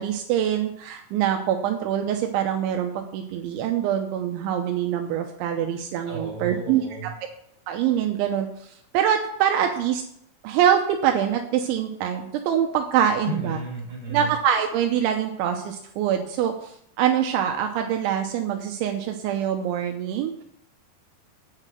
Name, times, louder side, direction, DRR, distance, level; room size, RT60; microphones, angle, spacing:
voice 1, 0.0-7.1 7.7-8.5 8.9-10.0 10.4-13.6 14.1-20.4, right 9 dB, 85° right, 3 dB, 3.0 m, -24 dB
voice 2, 6.1-7.1 13.2-14.3, right 1 dB, 30° right, -3 dB, 4.1 m, -33 dB
9.1 x 5.8 x 7.7 m, 0.72 s
omnidirectional pair, 5.6 m